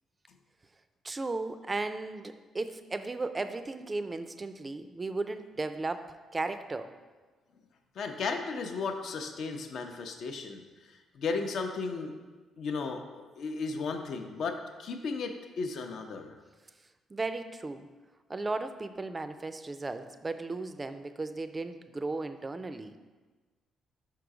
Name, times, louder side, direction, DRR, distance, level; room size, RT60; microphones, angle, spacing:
voice 1, 1.0-6.9 17.1-17.9 18.3-23.0, right 3 dB, 25° right, 10 dB, 0.4 m, -35 dB
voice 2, 8.0-12.1 12.6-16.3, left 4 dB, 65° left, 5 dB, 0.6 m, -35 dB
5.5 x 3.8 x 4.7 m, 1.3 s
cardioid pair, 90°, 0 cm